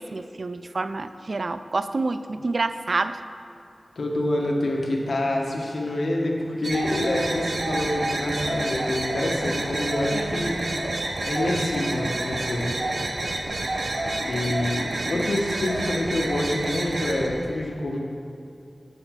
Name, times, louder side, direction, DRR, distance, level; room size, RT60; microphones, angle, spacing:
voice 1, 0.0-3.2 10.1-10.5, right 3 dB, 65° right, 11 dB, 0.4 m, -28 dB
voice 2, 3.9-10.6 11.2-13.0 14.2-18.0, left 1 dB, 80° left, -1 dB, 1.5 m, -27 dB
sound 1, 6.6-17.3, right 2 dB, 80° right, 1.0 m, -29 dB
16.5 x 6.3 x 3.8 m, 2.5 s
wide cardioid pair, 65°, 0 cm